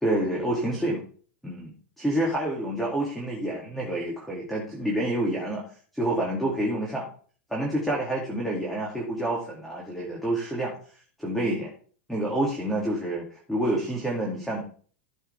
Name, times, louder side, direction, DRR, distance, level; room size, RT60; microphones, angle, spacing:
voice 1, 0.0-1.0 1.4-5.6 5.9-7.1 7.5-10.7 11.2-11.7 12.1-14.6, right 1 dB, 5° left, -2 dB, 2.5 m, -28 dB
14.5 x 7.1 x 3.5 m, 0.44 s
supercardioid pair, 155°, 6 cm